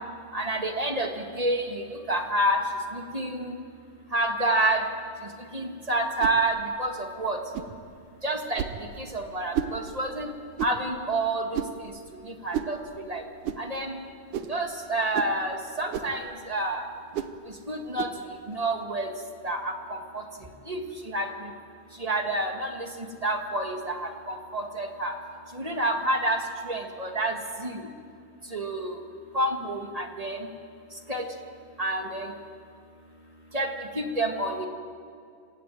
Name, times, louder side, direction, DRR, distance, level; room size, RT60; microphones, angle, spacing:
voice 1, 0.3-1.1 1.3-2.6 2.9-3.5 4.1-4.8 5.5-7.4 8.2-8.6 9.0-10.3 10.6-11.6 12.3-12.8 13.0-13.2 13.6-14.0 14.5-16.9 17.7-18.1 18.5-19.1 19.4-20.2 20.7-21.5 22.0-22.9 23.2-25.1 25.5-27.3 27.6-27.8 28.5-28.9 29.3-30.4 31.1-31.2 31.8-32.3 33.5-33.7 33.9-34.7, right 1 dB, 25° right, 2 dB, 0.8 m, -28 dB
sound 1, 6.2-6.4 7.5-7.8 8.6-8.8 9.5-9.8 10.6-10.8 11.5-11.8 12.5-12.8 13.4-13.6 14.3-14.6 15.1-15.4 15.9-16.2 17.1-17.4 18.0-18.2, right 9 dB, 70° right, 2.3 m, -32 dB
28.0 x 17.0 x 9.2 m, 2.3 s
omnidirectional pair, 3.9 m